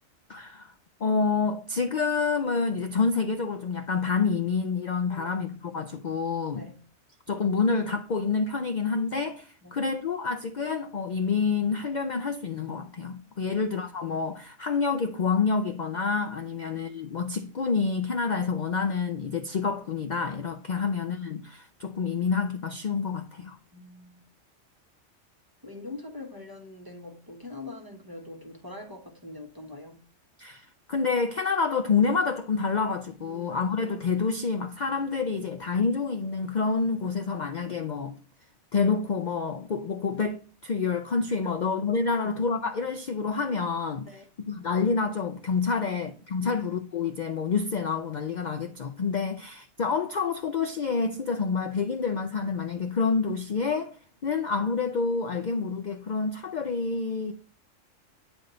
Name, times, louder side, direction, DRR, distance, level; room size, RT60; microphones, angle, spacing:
voice 1, 0.3-0.7 1.0-6.7 7.3-23.6 30.4-38.1 38.7-44.1 44.5-54.0 54.2-57.3, left 5 dB, 50° left, 0.6 m, -28 dB
voice 2, 23.7-24.3 25.6-30.0 33.2-33.6 44.1-44.2 46.4-46.7, left 2 dB, 20° right, 1.0 m, -44 dB
9.2 x 3.5 x 3.9 m
omnidirectional pair, 1.3 m